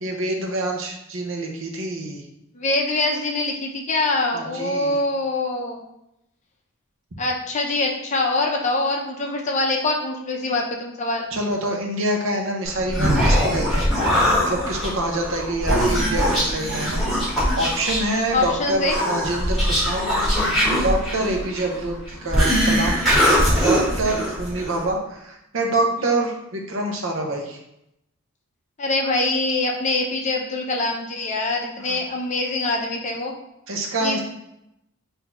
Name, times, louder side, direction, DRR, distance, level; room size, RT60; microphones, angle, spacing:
voice 1, 0.0-2.3 4.3-5.0 11.3-13.9 14.5-20.0 20.5-23.0 23.6-27.6 31.8-32.0 33.7-34.2, right 2 dB, 60° right, 2 dB, 0.7 m, -26 dB
voice 2, 2.5-5.8 7.2-11.3 18.3-18.9 21.4-21.5 28.8-33.3 34.0-34.2, left 2 dB, 35° left, 1 dB, 0.5 m, -24 dB
Human voice, 12.7-24.9, equal, ahead, 1.7 m, -21 dB
4.0 x 2.7 x 4.2 m, 0.83 s
head